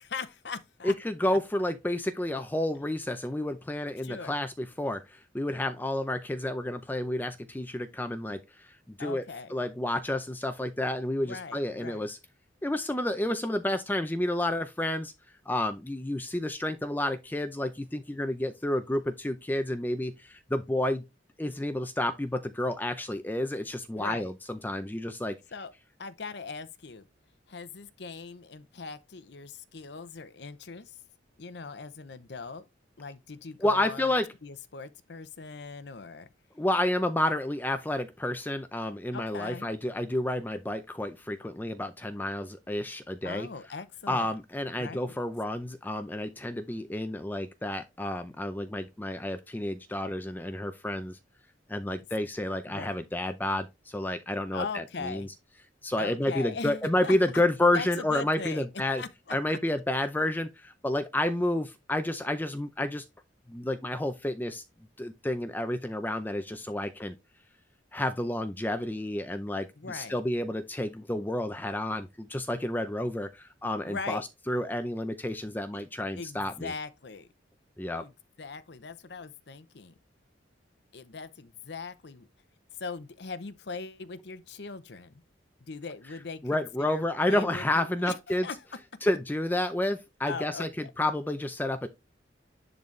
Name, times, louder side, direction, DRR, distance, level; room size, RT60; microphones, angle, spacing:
voice 1, 0.0-0.9 1.3-1.4 4.0-4.3 9.0-9.5 11.2-12.0 24.0-24.3 25.5-25.7 26.0-27.0 27.5-31.0 31.4-32.6 33.0-34.1 34.4-36.3 39.1-39.7 43.2-44.3 44.8-45.2 52.7-53.0 54.5-55.3 56.0-57.2 57.7-58.7 59.0-59.6 69.8-70.2 73.8-74.3 75.7-75.8 76.2-77.3 77.9-78.1 78.4-79.9 80.9-82.3 82.8-85.1 85.6-88.6 90.2-90.9, left 4 dB, 60° left, 0.7 m, -40 dB
voice 2, 0.8-12.2 12.6-15.1 15.5-21.0 21.4-25.4 33.6-34.3 36.6-43.5 44.1-51.2 51.7-55.3 55.8-59.0 59.3-63.0 63.5-64.6 65.0-67.1 67.9-74.2 74.5-76.7 77.8-78.0 86.4-88.5 89.0-91.9, left 1 dB, 10° left, 0.5 m, -30 dB
10.5 x 4.0 x 3.2 m
head